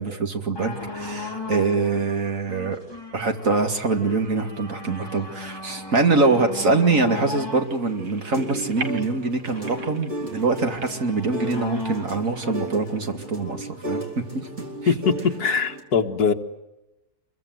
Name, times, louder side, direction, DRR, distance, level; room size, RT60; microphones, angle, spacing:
voice 1, 0.0-2.8 3.1-14.5 14.8-14.9, right 3 dB, 55° right, 5 dB, 2.7 m, -24 dB
sound 1, 0.6-14.1 14.9-15.0, left 2 dB, 15° left, 5.0 m, -37 dB
sound 2, 7.4-13.0, right 3 dB, 85° right, 2.3 m, -42 dB
sound 3, 7.6-15.8, equal, 35° right, 4.8 m, -35 dB
voice 2, 14.9-16.3, left 5 dB, 70° left, 5 dB, 2.1 m, -22 dB
27.0 x 22.5 x 7.9 m, 0.98 s
omnidirectional pair, 1.7 m